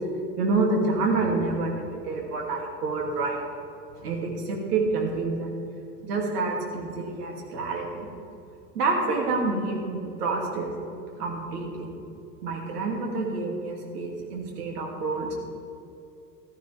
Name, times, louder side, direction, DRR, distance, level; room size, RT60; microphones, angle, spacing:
voice 1, 0.4-3.4 4.0-5.6 6.0-8.1 8.7-10.7 11.2-11.9 12.4-15.3, right 3 dB, 70° right, 0 dB, 2.9 m, -28 dB
15.0 x 13.5 x 3.6 m, 2.7 s
figure-of-eight pair, 85°, 49 cm